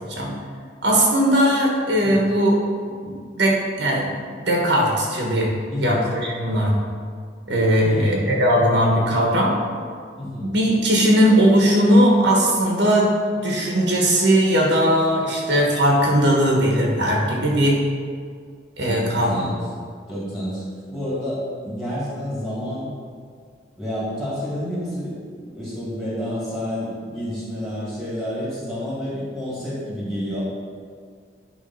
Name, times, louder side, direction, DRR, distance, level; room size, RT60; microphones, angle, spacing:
voice 1, 0.8-2.6 3.1-4.1 4.4-5.5 5.8-6.7 7.5-9.5 10.4-13.1 13.4-17.8 18.8-19.4, equal, 65° right, -2 dB, 1.3 m, -18 dB
voice 2, 5.7-6.0 7.8-8.2 10.1-10.5 18.8-19.7 20.1-20.6 20.9-22.9 23.8-30.4, equal, ahead, -7 dB, 2.0 m, -29 dB
9.6 x 3.5 x 5.5 m, 2.1 s
head